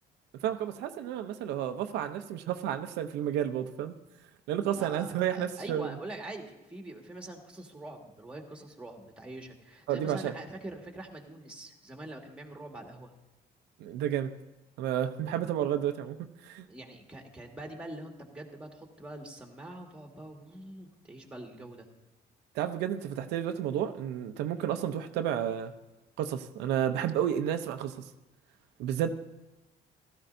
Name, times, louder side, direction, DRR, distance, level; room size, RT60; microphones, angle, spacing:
voice 1, 0.4-3.9 4.5-5.9 9.9-10.3 13.8-14.3 14.8-16.6 22.5-25.7 26.2-27.9 28.8-29.1, right 10 dB, 85° right, 7 dB, 0.7 m, -31 dB
voice 2, 4.7-13.1 16.7-21.9, right 1 dB, 5° right, 2 dB, 1.9 m, -44 dB
15.5 x 13.5 x 2.6 m, 0.99 s
cardioid pair, 110°, 17 cm